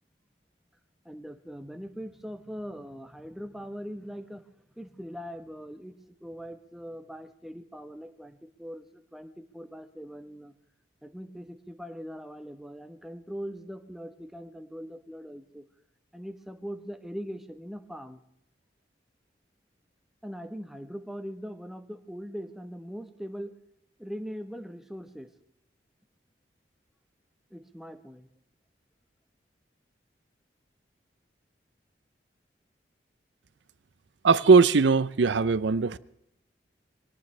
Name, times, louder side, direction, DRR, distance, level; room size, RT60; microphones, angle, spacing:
voice 1, 1.0-4.4 4.8-5.9 6.2-10.5 11.0-15.6 16.1-18.2 20.2-23.5 24.0-25.3 27.5-28.3, equal, ahead, 1.0 m, -41 dB
voice 2, 34.2-36.0, right 4 dB, 90° right, 0.6 m, -20 dB
23.5 x 18.0 x 3.3 m
head